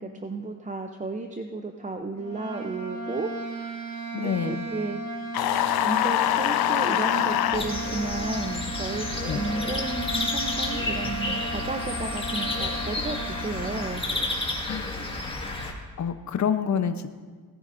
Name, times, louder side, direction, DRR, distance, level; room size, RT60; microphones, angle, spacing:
voice 1, 0.0-3.3 4.2-5.0 5.8-14.0, right 3 dB, 20° right, 5 dB, 0.7 m, -33 dB
sound 1, 2.2-14.0, right 1 dB, 55° right, 1.9 m, -35 dB
voice 2, 4.1-4.6 9.2-9.4 14.7-14.9 16.0-17.1, left 7 dB, 50° left, 9 dB, 0.9 m, -27 dB
sound 2, 5.3-7.6, left 12 dB, 85° left, 0.6 m, -24 dB
sound 3, 7.5-15.7, left 2 dB, 15° left, 1.9 m, -31 dB
19.0 x 9.8 x 2.6 m, 1.5 s
cardioid pair, 95°, 36 cm